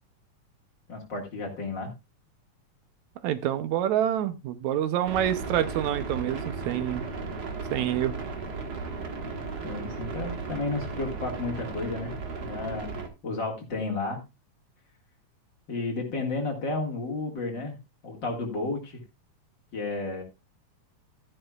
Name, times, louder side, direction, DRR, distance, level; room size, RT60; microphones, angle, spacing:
voice 1, 0.9-1.9 9.6-14.2 15.7-17.8 18.0-19.0 19.7-20.2, left 3 dB, 40° left, 2.3 m, -32 dB
voice 2, 3.2-7.0 7.7-8.3, right 11 dB, 75° right, 2.1 m, -27 dB
sound 1, 5.1-13.1, right 4 dB, 40° right, 1.6 m, -35 dB
13.5 x 11.0 x 2.4 m
omnidirectional pair, 3.4 m